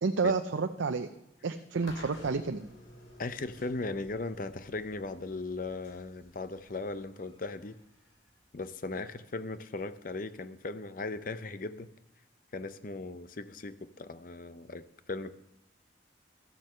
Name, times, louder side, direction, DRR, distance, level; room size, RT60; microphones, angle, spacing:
voice 1, 0.0-1.1 1.4-2.7, right 4 dB, 85° right, 7 dB, 0.6 m, -30 dB
sound 1, 1.8-8.9, left 1 dB, 80° left, 3.6 m, -53 dB
voice 2, 3.2-7.8 8.5-11.9 12.5-15.3, left 3 dB, 45° left, 12 dB, 0.6 m, -38 dB
13.5 x 7.5 x 6.6 m, 0.83 s
head